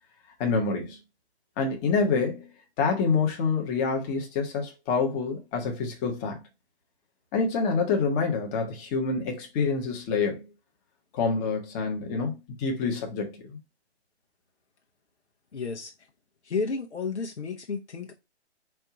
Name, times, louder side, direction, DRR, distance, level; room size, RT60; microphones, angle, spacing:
voice 1, 0.4-1.0 1.6-2.5 2.8-6.4 7.3-10.4 11.1-13.6, left 4 dB, 20° left, 0.8 m, -27 dB
voice 2, 15.5-15.9 16.4-18.1, left 4 dB, 90° left, 0.9 m, -32 dB
4.4 x 2.6 x 4.6 m
hypercardioid pair, 145°, 34 cm